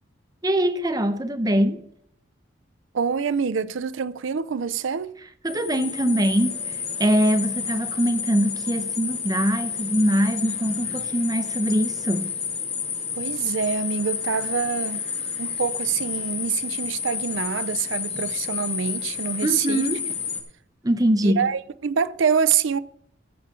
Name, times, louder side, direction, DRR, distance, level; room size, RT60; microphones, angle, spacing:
voice 1, 0.4-1.8 5.4-12.3 19.4-20.1 20.8-21.5, equal, 20° right, 0.7 m, -23 dB
voice 2, 2.9-5.1 13.2-15.0 15.4-19.8 21.2-22.8, right 6 dB, 70° right, 0.5 m, -25 dB
sound 1, 5.5-20.4, left 6 dB, 30° left, 2.1 m, -30 dB
14.0 x 8.0 x 3.7 m
head